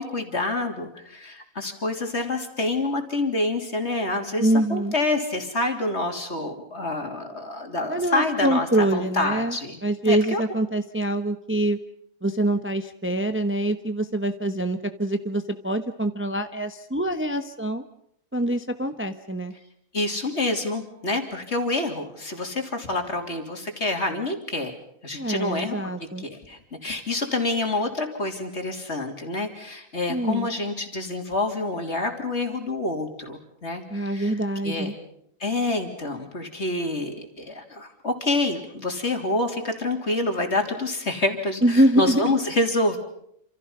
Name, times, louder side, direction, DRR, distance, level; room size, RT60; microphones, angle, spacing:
voice 1, 0.0-9.8 10.1-10.4 19.9-24.8 25.0-25.8 26.2-34.4 34.6-34.9 35.4-43.0, left 2 dB, 50° left, 4 dB, 3.5 m, -27 dB
voice 2, 4.4-4.9 7.9-9.6 9.8-11.8 12.2-17.8 18.3-19.5 25.1-26.2 30.1-30.5 33.9-34.9 41.6-42.3, right 1 dB, 10° right, 8 dB, 1.0 m, -24 dB
28.0 x 27.5 x 5.6 m, 0.73 s
omnidirectional pair, 1.4 m